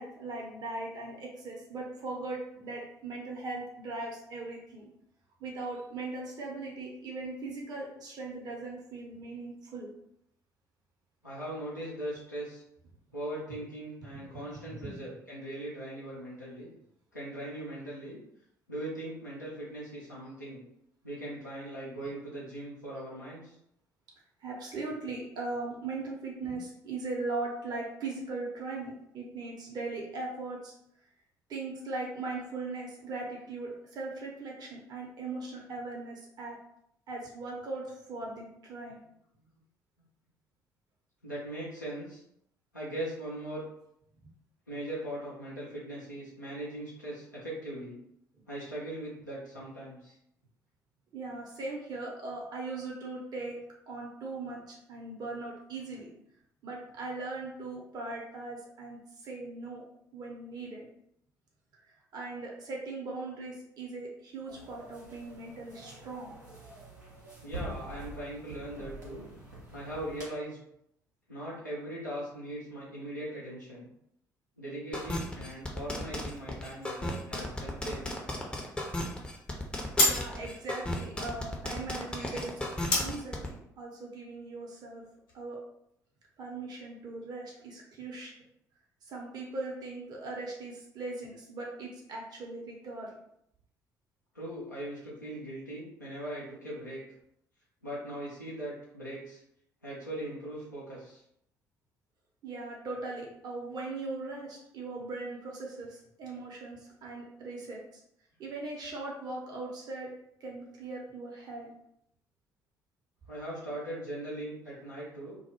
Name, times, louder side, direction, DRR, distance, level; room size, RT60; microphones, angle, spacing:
voice 1, 0.0-4.9 5.4-9.9 14.1-15.0 24.4-30.7 31.5-36.6 37.1-39.0 51.1-53.6 53.9-56.1 56.6-59.8 60.1-60.8 61.8-66.3 80.0-85.0 85.3-85.6 86.4-88.3 89.0-93.1 102.4-108.0 108.4-110.1 110.4-111.7, right 3 dB, 45° right, -2 dB, 0.7 m, -39 dB
voice 2, 11.2-12.6 13.1-16.7 17.1-18.2 18.7-20.6 21.0-23.5 41.2-42.2 42.7-43.6 44.7-48.0 48.5-50.1 67.4-69.2 69.7-70.6 71.3-73.9 74.6-78.1 94.3-97.0 97.8-99.4 99.8-101.2 113.3-115.4, right 1 dB, 90° left, -8 dB, 0.5 m, -40 dB
sound 1, 64.5-70.2, right 2 dB, 85° right, 0.6 m, -46 dB
sound 2, 74.9-83.5, left 1 dB, 10° left, 0.5 m, -35 dB
sound 3, 76.8-85.4, left 2 dB, 60° left, 0.9 m, -35 dB
2.2 x 2.0 x 2.9 m, 0.74 s
figure-of-eight pair, 50°, 9 cm